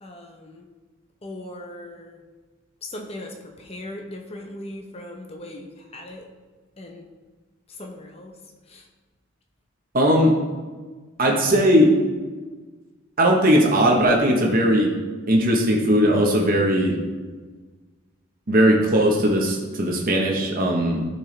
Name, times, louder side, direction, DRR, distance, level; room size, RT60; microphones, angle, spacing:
voice 1, 0.0-0.6 1.2-2.2 2.8-6.3 6.8-7.1 7.8-8.3 8.7-8.8, left 1 dB, 30° left, 2 dB, 0.8 m, -38 dB
voice 2, 9.9-10.3 11.2-11.9 13.2-14.9 15.3-17.0 18.5-21.0, equal, 45° right, 0 dB, 1.0 m, -18 dB
12.0 x 4.5 x 3.3 m, 1.3 s
head